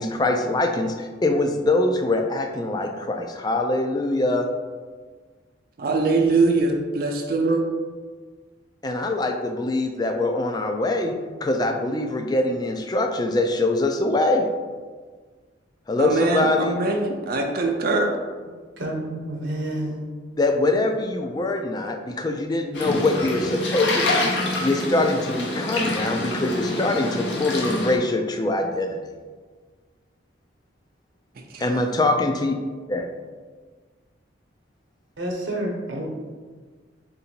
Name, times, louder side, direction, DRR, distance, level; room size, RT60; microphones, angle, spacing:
voice 1, 0.0-4.5 8.8-14.4 15.9-16.8 20.4-24.3 24.6-29.1 31.6-32.6 32.9-33.1, left 2 dB, 20° left, 4 dB, 0.3 m, -23 dB
voice 2, 5.8-7.6 16.0-18.1 31.5-31.6, right 3 dB, 50° right, 2 dB, 0.4 m, -22 dB
voice 3, 18.8-20.0 35.2-36.1, right 1 dB, 80° right, -1 dB, 0.9 m, -29 dB
sound 1, 22.7-28.0, left 2 dB, 70° left, 0.8 m, -26 dB
3.7 x 2.7 x 4.3 m, 1.5 s
head